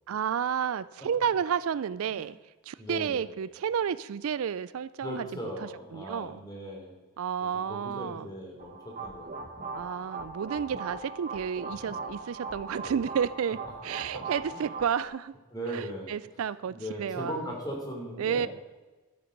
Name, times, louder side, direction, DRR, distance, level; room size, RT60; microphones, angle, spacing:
voice 1, 0.1-2.4 2.7-5.3 5.6-6.4 7.2-8.3 9.7-15.3 15.7-17.5 18.2-18.5, right 7 dB, 70° right, 17 dB, 0.4 m, -31 dB
voice 2, 2.8-3.3 5.0-6.9 7.7-9.3 10.7-10.8 14.0-14.2 14.5-14.6 15.5-16.1 16.7-18.5, equal, 15° left, -1 dB, 3.1 m, -38 dB
sound 1, 8.6-15.1, right 3 dB, 35° right, 1.3 m, -39 dB
12.5 x 9.5 x 5.2 m, 1.2 s
head